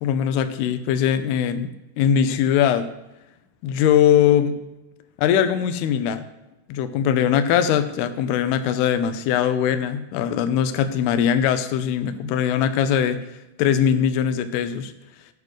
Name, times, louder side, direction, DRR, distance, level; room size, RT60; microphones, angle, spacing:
voice 1, 0.0-1.7 2.0-2.9 3.6-4.6 5.2-6.3 6.7-13.2 13.6-14.9, left 9 dB, 90° left, 9 dB, 2.3 m, -21 dB
19.5 x 7.8 x 3.1 m, 1.0 s
omnidirectional pair, 5.6 m